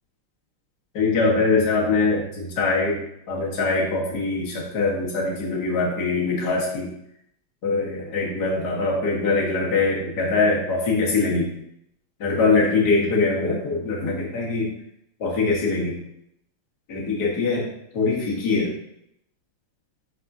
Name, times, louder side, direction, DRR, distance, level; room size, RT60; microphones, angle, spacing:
voice 1, 0.9-6.9 7.6-11.5 12.2-14.7 15.2-16.0 16.9-18.7, left 3 dB, 50° left, -3 dB, 1.9 m, -23 dB
10.0 x 4.1 x 2.7 m, 0.76 s
omnidirectional pair, 2.4 m